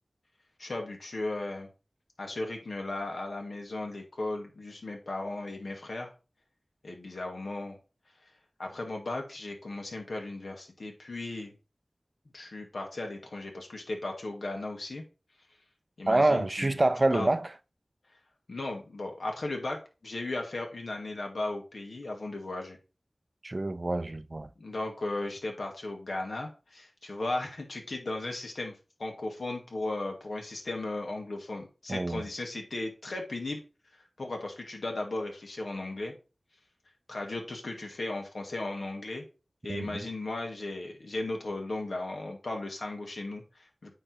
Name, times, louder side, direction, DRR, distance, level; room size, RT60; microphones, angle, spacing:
voice 1, 0.6-1.7 2.2-6.1 6.8-7.8 8.6-11.5 12.3-15.0 16.0-17.3 18.5-22.8 24.6-28.7 29.0-33.6 34.2-36.1 37.1-39.2 39.6-43.9, left 2 dB, 80° left, 1.8 m, -36 dB
voice 2, 16.1-17.5 23.4-24.5 31.9-32.2 39.7-40.0, right 2 dB, 45° right, 0.5 m, -26 dB
8.9 x 3.3 x 4.5 m
wide cardioid pair, 40°, 0 cm